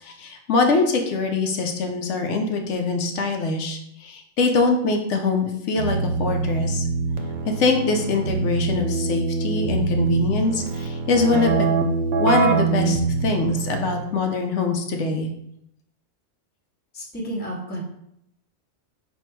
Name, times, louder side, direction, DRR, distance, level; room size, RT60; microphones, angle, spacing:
voice 1, 0.0-6.8 7.5-11.6 12.2-15.3, left 3 dB, 70° left, 3 dB, 0.9 m, -23 dB
Keyboard (musical), 5.8-14.2, right 4 dB, 85° right, 1.0 m, -24 dB
voice 2, 16.9-17.8, right 1 dB, 10° left, -2 dB, 0.6 m, -31 dB
4.4 x 2.5 x 4.5 m, 0.77 s
omnidirectional pair, 1.3 m